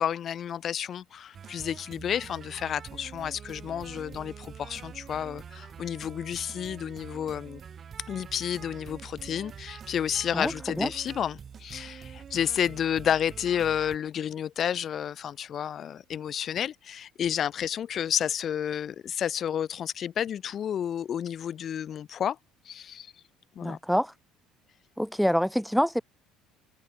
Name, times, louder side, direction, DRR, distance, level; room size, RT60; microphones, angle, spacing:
voice 1, 0.0-7.6 8.1-22.4 22.7-23.1 23.6-23.8, left 9 dB, 45° left, 0.3 m, -31 dB
sound 1, 1.3-14.0, right 7 dB, 40° right, 5.2 m, -45 dB
voice 2, 10.3-10.9 23.6-24.1 25.0-26.0, equal, ahead, 1.0 m, -26 dB
figure-of-eight pair, 55°, 0 cm